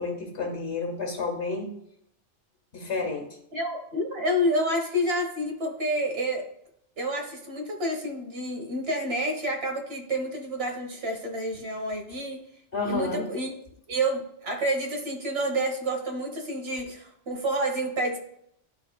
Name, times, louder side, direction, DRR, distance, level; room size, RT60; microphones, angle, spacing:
voice 1, 0.0-1.7 2.7-3.3 12.7-13.3, left 3 dB, 70° left, 3 dB, 1.7 m, -30 dB
voice 2, 3.5-6.4 7.0-12.4 12.9-13.6 13.9-18.2, right 1 dB, 60° right, 2 dB, 1.6 m, -29 dB
12.0 x 4.1 x 2.3 m, 0.72 s
omnidirectional pair, 1.2 m